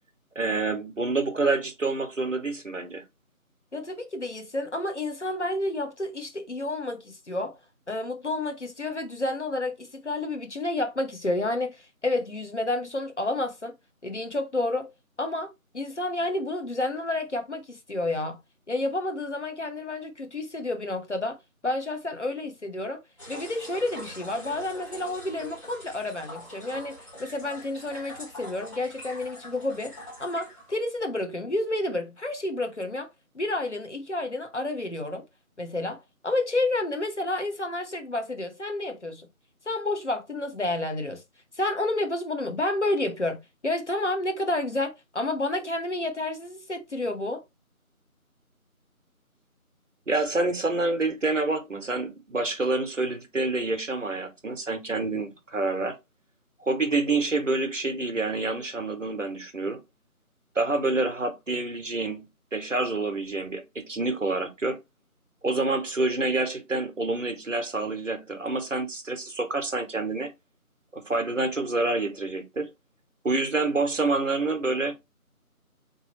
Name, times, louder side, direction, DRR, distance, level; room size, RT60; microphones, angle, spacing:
voice 1, 0.4-3.0 50.1-56.0 56.6-59.8 60.5-62.3 62.5-64.8 65.4-70.3 70.9-72.7 73.2-74.9, right 3 dB, 60° right, 0.8 m, -27 dB
voice 2, 3.7-7.6 7.9-13.7 14.0-14.9 15.2-18.4 18.7-21.4 21.6-23.0 23.3-29.9 30.2-33.1 33.3-35.2 35.6-39.3 39.7-41.2 41.5-47.4, left 2 dB, 50° left, 0.8 m, -30 dB
sound 1, 23.2-31.0, equal, 20° left, 2.0 m, -44 dB
3.5 x 3.0 x 3.0 m
figure-of-eight pair, 170°, 44 cm